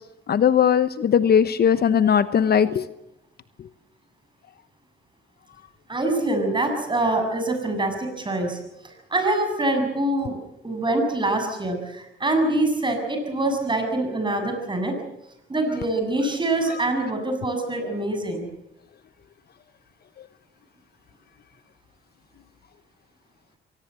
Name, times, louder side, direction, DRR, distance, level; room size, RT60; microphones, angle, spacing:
voice 1, 0.3-2.8, left 8 dB, 55° left, 14 dB, 1.0 m, -19 dB
voice 2, 5.9-8.6 9.1-10.4 10.6-14.9 15.5-18.5, right 2 dB, 25° right, 5 dB, 7.1 m, -24 dB
24.0 x 18.5 x 7.7 m, 0.85 s
cardioid pair, 90°, 20 cm